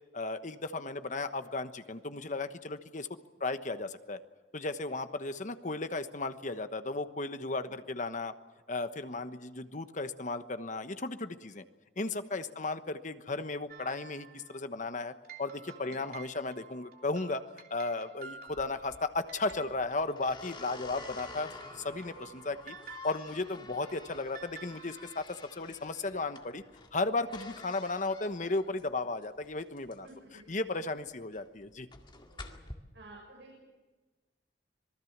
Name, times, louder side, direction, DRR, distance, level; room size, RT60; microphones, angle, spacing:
voice 1, 0.1-3.1 3.4-4.2 4.5-8.3 8.7-11.6 12.0-15.1 15.4-17.4 17.7-26.6 26.9-30.1 30.5-31.9, left 3 dB, 45° left, 10 dB, 1.2 m, -35 dB
sound 1, 13.7-14.6 15.2-25.2, right 6 dB, 55° right, 3.1 m, -52 dB
sound 2, 18.5-32.7, left 3 dB, 25° left, 2.1 m, -50 dB
voice 2, 30.0-30.4 32.1-32.5 32.9-33.6, right 2 dB, 75° right, -2 dB, 6.8 m, -54 dB
26.5 x 20.0 x 7.4 m, 1.2 s
head